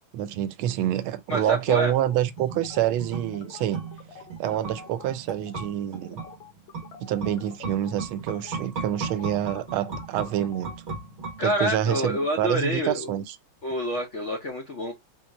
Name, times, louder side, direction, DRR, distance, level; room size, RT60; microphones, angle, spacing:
voice 1, 0.1-3.8 4.4-6.2 7.0-10.7 11.4-13.3, right 12 dB, 90° right, 1.4 m, -27 dB
voice 2, 1.3-2.0 11.4-13.1 13.6-14.9, equal, 65° left, 0.7 m, -27 dB
sound 1, 1.9-5.1 5.4-5.7 5.9-10.8, left 6 dB, 85° left, 1.6 m, -47 dB
sound 2, 2.3-11.9 12.2-12.3, right 4 dB, 60° right, 0.7 m, -37 dB
4.0 x 2.4 x 3.0 m
omnidirectional pair, 2.2 m